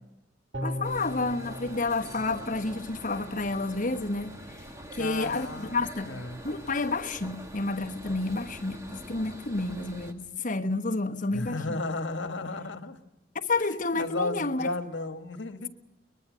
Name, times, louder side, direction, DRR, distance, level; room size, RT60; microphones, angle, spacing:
sound 1, 0.5-3.9 4.2-4.3, equal, 60° right, 2.1 m, -39 dB
voice 1, 0.6-4.6 4.9-6.2 6.4-11.8 13.4-14.7, left 3 dB, 45° left, 1.2 m, -30 dB
sound 2, 0.8-10.1, equal, 15° right, 2.0 m, -45 dB
voice 2, 5.0-6.4 11.3-13.0 13.9-15.7, left 2 dB, 75° left, 1.5 m, -34 dB
22.5 x 21.5 x 6.3 m
head